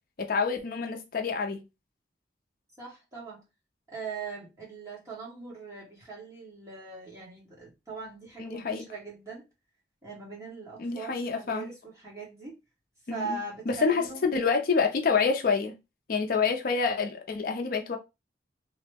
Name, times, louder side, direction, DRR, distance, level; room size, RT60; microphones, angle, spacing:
voice 1, 0.2-1.6 8.4-8.9 10.8-11.7 13.1-13.4 13.7-15.8 16.1-18.0, left 5 dB, 55° left, 0.4 m, -27 dB
voice 2, 2.8-3.4 3.9-9.4 10.0-12.6 13.1-14.4, right 4 dB, 15° right, 1.3 m, -41 dB
2.9 x 2.0 x 3.3 m
head